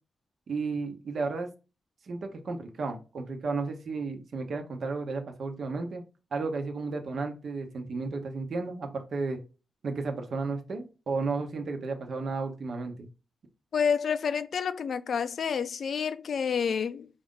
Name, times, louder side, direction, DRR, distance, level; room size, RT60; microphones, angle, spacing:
voice 1, 0.5-1.5 2.1-6.0 6.3-9.4 9.8-13.1, right 4 dB, 65° right, 0.8 m, -33 dB
voice 2, 13.7-17.1, left 6 dB, 70° left, 0.3 m, -29 dB
4.7 x 2.6 x 3.6 m
cardioid pair, 90°, 0 cm